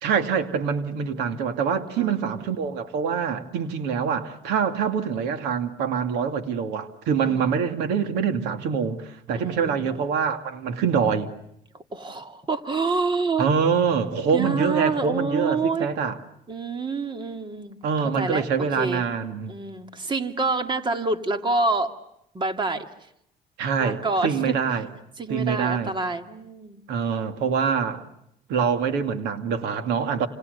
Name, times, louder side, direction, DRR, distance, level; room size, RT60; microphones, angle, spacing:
voice 1, 0.0-11.3 13.4-16.2 17.8-19.6 23.6-24.9 25.3-25.9 26.9-28.0 28.5-30.3, right 6 dB, 90° right, 2.4 m, -25 dB
voice 2, 2.0-2.5 7.2-7.5 9.3-10.0 11.9-13.5 14.3-15.9 16.5-17.8 18.1-19.0 19.5-21.9 22.3-22.9 23.8-24.5 25.2-26.8, right 3 dB, 30° right, 2.3 m, -27 dB
29.0 x 28.0 x 6.7 m
cardioid pair, 110°, 17 cm